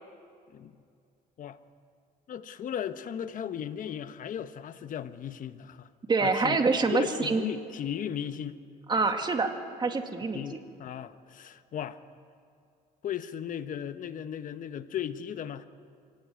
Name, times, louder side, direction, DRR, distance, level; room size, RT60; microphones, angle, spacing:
voice 1, 2.3-5.9 6.2-6.6 6.9-8.6 10.3-12.0 13.0-15.7, left 9 dB, 50° left, 11 dB, 1.1 m, -36 dB
voice 2, 6.1-7.4 8.9-9.5 9.8-10.4, right 4 dB, 25° right, 5 dB, 2.2 m, -26 dB
25.5 x 17.5 x 9.5 m, 2.3 s
cardioid pair, 110°, 17 cm